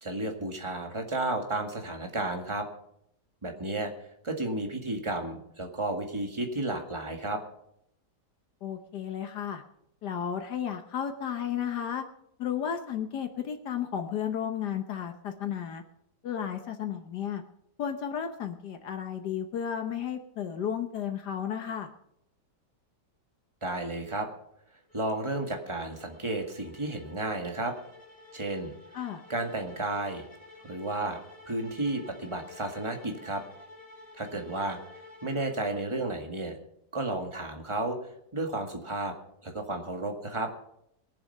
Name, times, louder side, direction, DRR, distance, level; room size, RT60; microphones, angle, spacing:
voice 1, 0.0-2.7 3.4-3.9 4.2-7.4 23.6-24.3 24.9-27.7 28.3-28.7 29.3-30.2 30.6-31.2 31.5-33.4 34.1-34.8 35.2-36.6 36.9-38.0 38.3-39.1 39.4-40.5, right 2 dB, 15° right, 3 dB, 1.9 m, -32 dB
voice 2, 8.6-9.6 10.0-12.0 12.4-15.8 16.2-17.4 17.8-21.9 28.9-29.2, left 8 dB, 75° left, 6 dB, 1.6 m, -33 dB
sound 1, 24.9-36.2, left 2 dB, 10° left, 3.7 m, -52 dB
22.0 x 7.5 x 5.5 m, 0.75 s
omnidirectional pair, 1.8 m